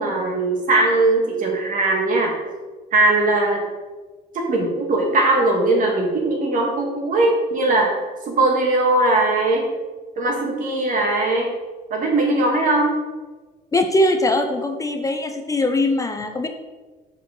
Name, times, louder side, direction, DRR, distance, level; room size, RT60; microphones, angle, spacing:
voice 1, 0.0-2.3 2.9-3.6 4.3-8.0 8.3-9.7 10.2-11.5 11.9-12.9, right 2 dB, 50° right, 0 dB, 2.2 m, -19 dB
voice 2, 13.7-16.5, left 1 dB, 20° left, 5 dB, 0.6 m, -21 dB
5.9 x 4.7 x 6.2 m, 1.3 s
cardioid pair, 110°, 17 cm